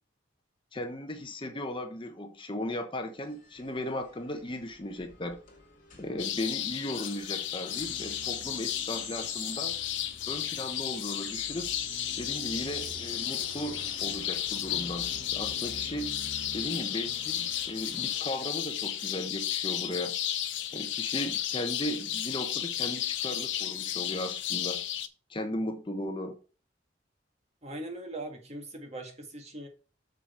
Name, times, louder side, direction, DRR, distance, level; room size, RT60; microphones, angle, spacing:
voice 1, 0.7-5.4 6.0-9.8 10.3-11.7 12.2-16.1 16.5-20.1 20.7-24.8 25.3-26.4, left 1 dB, 25° left, 0.9 m, -36 dB
sound 1, 3.2-18.2, left 4 dB, 45° left, 2.9 m, -45 dB
sound 2, 6.2-25.1, left 11 dB, 75° left, 0.7 m, -33 dB
voice 2, 27.6-29.7, right 1 dB, 35° right, 1.7 m, -40 dB
6.8 x 6.6 x 4.2 m
head